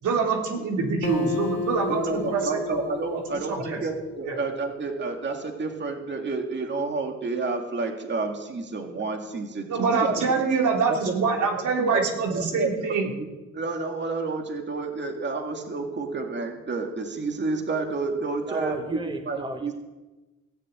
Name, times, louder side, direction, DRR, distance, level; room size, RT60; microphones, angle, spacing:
voice 1, 0.0-2.6 3.5-3.8 4.2-4.4 9.6-13.1, right 5 dB, 75° right, 0 dB, 3.4 m, -25 dB
Acoustic guitar, 1.0-4.6, left 4 dB, 40° left, 2.1 m, -33 dB
voice 2, 1.9-10.4 10.9-13.3 13.5-19.7, right 3 dB, 35° right, 3 dB, 2.3 m, -30 dB
voice 3, 18.5-19.7, right 2 dB, 15° right, 5 dB, 1.3 m, -34 dB
17.5 x 6.8 x 9.1 m, 1.1 s
cardioid pair, 90°, 30 cm